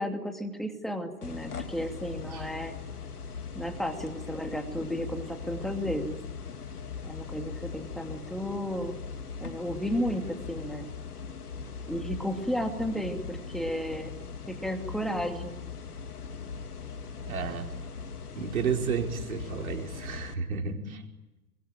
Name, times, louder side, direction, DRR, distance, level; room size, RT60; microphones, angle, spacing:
voice 1, 0.0-2.8 3.5-6.2 7.0-9.0 9.4-10.9 11.9-14.1 14.5-15.6, equal, ahead, 5 dB, 2.6 m, -33 dB
sound 1, 1.2-20.4, left 5 dB, 75° left, 2.3 m, -40 dB
voice 2, 17.2-17.7 18.3-21.0, right 6 dB, 65° right, 2 dB, 4.8 m, -32 dB
26.5 x 23.5 x 9.2 m, 1.0 s
figure-of-eight pair, 110°, 46 cm